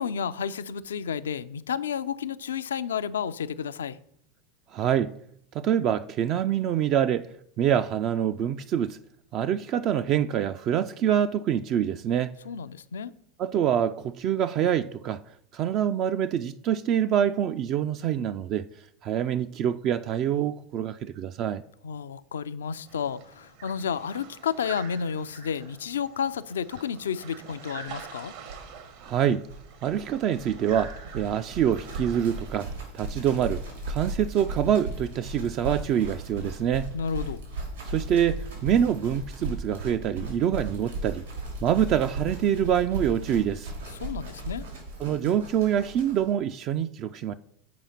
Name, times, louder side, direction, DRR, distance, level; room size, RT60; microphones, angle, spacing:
voice 1, 0.0-4.0 12.4-13.1 21.8-28.4 36.9-37.4 43.9-44.7, left 7 dB, 80° left, 0.4 m, -31 dB
voice 2, 4.7-5.1 5.5-7.3 7.6-9.0 9.3-12.3 13.4-15.2 15.5-18.7 19.0-21.6 29.0-29.5 29.8-36.9 37.9-41.2 41.6-43.7 45.0-47.3, right 9 dB, 50° right, 0.3 m, -25 dB
sound 1, 22.9-32.7, right 6 dB, 65° right, 1.3 m, -46 dB
sound 2, 27.9-28.0 28.2-28.3 28.4-46.3, right 2 dB, 85° right, 3.6 m, -37 dB
7.5 x 5.0 x 5.7 m
hypercardioid pair, 90°, 0 cm